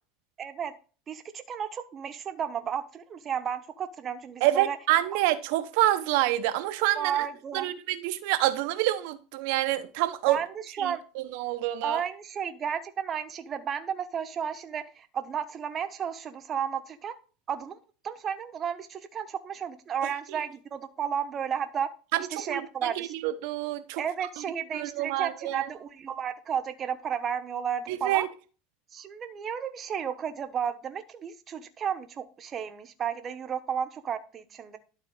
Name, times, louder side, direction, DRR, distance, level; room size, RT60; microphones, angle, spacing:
voice 1, 0.4-0.7 1.1-4.8 6.9-7.7 10.3-10.5 10.7-11.0 11.8-17.1 17.5-17.8 18.0-21.9 22.3-23.1 24.0-28.3 28.9-34.8, right 8 dB, 35° right, 1.1 m, -33 dB
voice 2, 4.4-7.2 7.5-10.4 10.8-12.0 20.3-20.4 22.1-24.0 24.4-24.5 24.7-25.7 27.9-28.3, right 15 dB, 70° right, 0.9 m, -27 dB
12.0 x 4.0 x 4.0 m
supercardioid pair, 105°, 0 cm